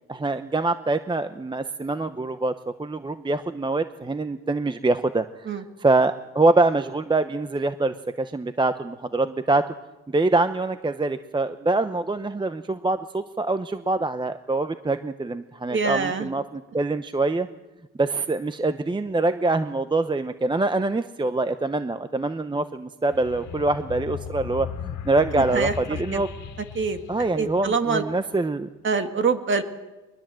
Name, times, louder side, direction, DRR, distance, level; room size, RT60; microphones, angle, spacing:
voice 1, 0.1-9.7 10.1-17.5 18.0-26.3 27.1-28.7, right 2 dB, 15° right, 10 dB, 0.8 m, -24 dB
voice 2, 15.7-16.3 25.3-25.7 26.1-26.2 26.7-27.0 27.4-28.0 28.8-29.6, right 4 dB, 40° right, 7 dB, 2.0 m, -24 dB
sound 1, 23.1-28.1, left 7 dB, 75° left, 2.0 m, -37 dB
22.5 x 20.5 x 7.6 m, 1.1 s
cardioid pair, 90°, 30 cm